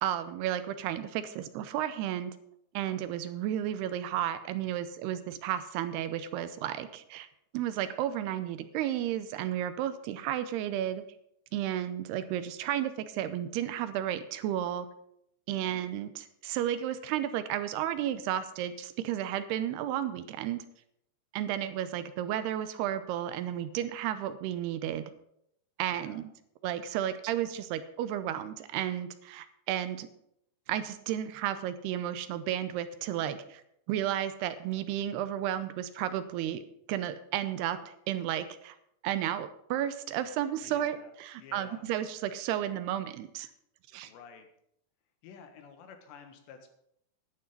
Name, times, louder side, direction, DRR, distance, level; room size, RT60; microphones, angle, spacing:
voice 1, 0.0-2.3 2.7-7.3 7.5-11.0 11.5-14.9 15.5-20.6 21.3-25.1 25.8-26.2 26.6-30.1 30.7-33.6 33.9-36.6 36.9-37.8 38.1-38.7 39.0-43.5 43.9-44.1, right 11 dB, 85° right, 11 dB, 2.7 m, -33 dB
voice 2, 15.5-15.8 25.9-26.2 40.6-41.9 44.1-44.5 45.2-46.7, left 6 dB, 85° left, 6 dB, 3.7 m, -51 dB
11.5 x 10.5 x 5.5 m, 0.75 s
omnidirectional pair, 4.9 m